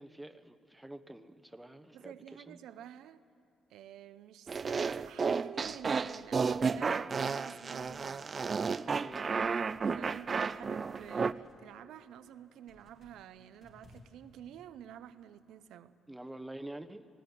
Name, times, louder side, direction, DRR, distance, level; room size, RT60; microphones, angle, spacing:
voice 1, 0.0-2.6 9.0-9.3 16.1-17.1, right 1 dB, 5° right, 0.9 m, -47 dB
voice 2, 1.9-3.2 3.7-8.3 9.9-16.0, right 10 dB, 85° right, 0.6 m, -50 dB
sound 1, 4.5-11.3, right 5 dB, 40° right, 0.5 m, -32 dB
sound 2, 5.5-8.9 9.3-11.6 12.1-14.5, left 2 dB, 50° left, 3.8 m, -63 dB
18.5 x 17.0 x 9.2 m
cardioid pair, 90°, 0 cm